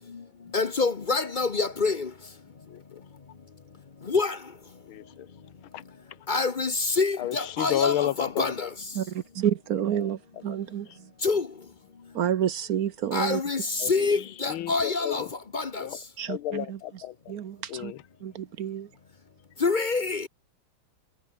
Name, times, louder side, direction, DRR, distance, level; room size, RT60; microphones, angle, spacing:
voice 1, 0.5-1.9 4.1-4.3 6.3-6.7 7.0-8.5 11.2-11.4 13.1-13.6 13.9-15.2 15.5-15.6 19.6-20.2, left 4 dB, 40° left, 0.6 m, -26 dB
voice 2, 2.7-3.1 4.8-5.3 5.7-5.8 6.1-6.2 7.2-8.7 10.0-10.1 13.8-15.3 15.8-17.4 17.7-18.0, left 13 dB, 80° left, 1.7 m, -32 dB
voice 3, 8.9-11.1 12.1-13.4 16.2-16.8 17.3-17.9 18.2-18.9, right 9 dB, 55° right, 1.1 m, -29 dB
omnidirectional pair, 2.3 m